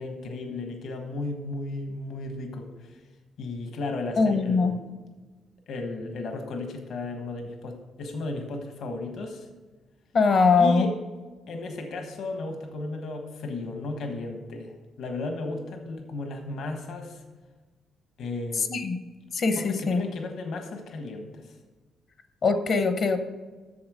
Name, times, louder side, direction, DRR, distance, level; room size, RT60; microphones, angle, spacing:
voice 1, 0.0-3.0 3.4-4.8 5.7-9.5 10.6-10.9 11.5-17.2 18.2-18.7 19.5-21.6, left 2 dB, 60° left, 5 dB, 1.3 m, -34 dB
voice 2, 4.2-4.7 10.1-10.9 18.6-19.0 19.3-20.0 22.4-23.2, left 4 dB, 45° left, 9 dB, 0.8 m, -22 dB
8.6 x 7.0 x 6.3 m, 1.3 s
cardioid pair, 160°, 0 cm